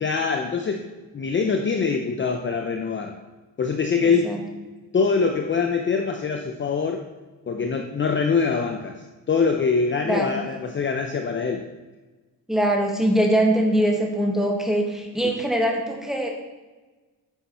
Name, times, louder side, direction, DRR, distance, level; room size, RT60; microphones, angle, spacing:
voice 1, 0.0-0.9 1.1-3.2 3.6-4.4 4.9-7.1 7.5-11.7 15.2-15.4, left 5 dB, 30° left, 5 dB, 0.7 m, -24 dB
voice 2, 4.0-4.4 10.0-10.4 12.5-16.3, right 1 dB, ahead, 0 dB, 1.8 m, -22 dB
9.5 x 7.0 x 5.6 m, 1.2 s
cardioid pair, 150°, 37 cm